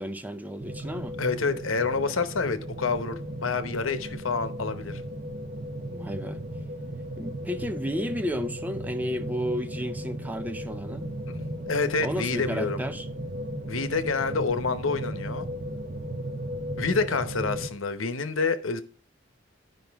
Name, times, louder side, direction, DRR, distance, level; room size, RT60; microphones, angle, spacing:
voice 1, 0.0-1.2 5.9-6.4 7.2-11.1 12.0-13.1, equal, 10° right, 0.5 m, -32 dB
sound 1, 0.6-17.7, right 1 dB, 40° right, 0.9 m, -35 dB
voice 2, 1.2-5.0 11.3-11.4 11.7-12.8 13.7-15.5 16.8-18.8, left 4 dB, 90° left, 0.9 m, -28 dB
11.5 x 5.3 x 3.5 m
head